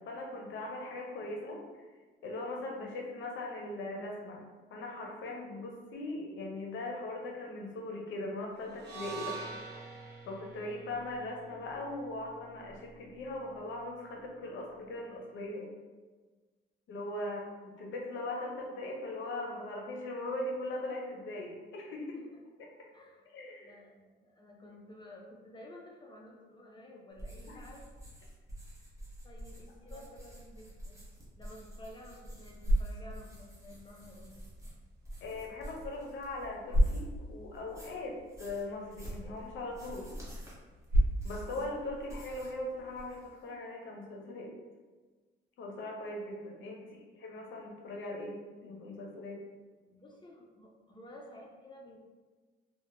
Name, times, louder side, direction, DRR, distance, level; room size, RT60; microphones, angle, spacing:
voice 1, 0.0-1.6 2.2-9.4 10.3-15.7 16.9-22.2 22.8-22.9 23.3-23.8 27.5-27.6 29.9-30.0 35.2-40.2 41.2-44.5 45.6-48.4 48.6-49.4, left 2 dB, 75° left, 0 dB, 0.6 m, -40 dB
sound 1, 8.7-12.9, right 5 dB, 60° right, 0.8 m, -46 dB
voice 2, 23.6-27.8 29.2-31.0 31.4-34.3 46.8-47.0 49.9-52.1, left 1 dB, 25° left, -1 dB, 0.5 m, -52 dB
sound 2, 27.1-37.2 37.5-42.6 42.9-43.4, right 1 dB, 15° right, 0.9 m, -49 dB
sound 3, 32.2-43.3, equal, 90° right, 0.6 m, -35 dB
2.9 x 2.1 x 2.5 m, 1.3 s
cardioid pair, 90°, 20 cm